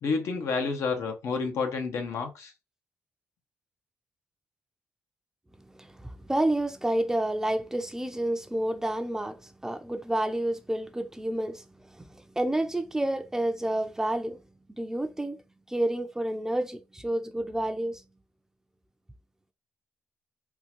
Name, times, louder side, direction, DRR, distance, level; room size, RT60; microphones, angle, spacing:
voice 1, 0.0-2.5, left 4 dB, 75° left, 0.8 m, -29 dB
voice 2, 5.7-14.4 14.7-15.4 15.7-18.0, right 1 dB, 10° right, 0.4 m, -29 dB
3.7 x 2.4 x 2.9 m
cardioid pair, 100°, 5 cm